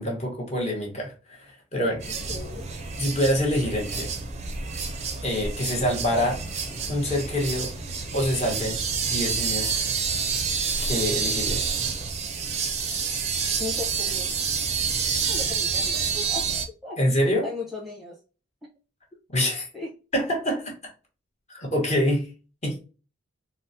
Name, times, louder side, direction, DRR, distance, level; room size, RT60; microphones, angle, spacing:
voice 1, 0.0-2.2 3.0-4.1 5.2-6.4 6.9-7.7 8.1-8.8 9.0-9.8 10.8-11.7 17.0-17.5 19.3-19.7 20.1-20.9 21.5-22.3 22.6-22.8, equal, 30° left, 1.0 m, -26 dB
voice 2, 2.0-2.7 13.6-14.4 15.3-16.5 16.8-17.0 17.4-18.2 19.7-19.9, left 3 dB, ahead, 0.8 m, -36 dB
sound 1, 2.0-16.6, right 5 dB, 30° right, 0.5 m, -28 dB
3.9 x 2.0 x 2.6 m
head